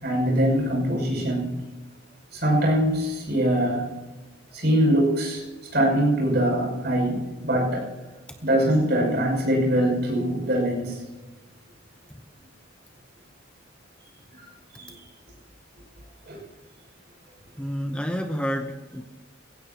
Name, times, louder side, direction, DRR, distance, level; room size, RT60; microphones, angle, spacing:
voice 1, 0.0-1.6 2.3-3.9 4.5-5.4 5.7-7.9 8.4-11.0 14.7-14.9 16.3-16.4, equal, 55° right, 0 dB, 6.0 m, -23 dB
voice 2, 17.6-19.0, equal, 5° left, 4 dB, 0.8 m, -30 dB
21.5 x 16.0 x 2.9 m, 1.2 s
head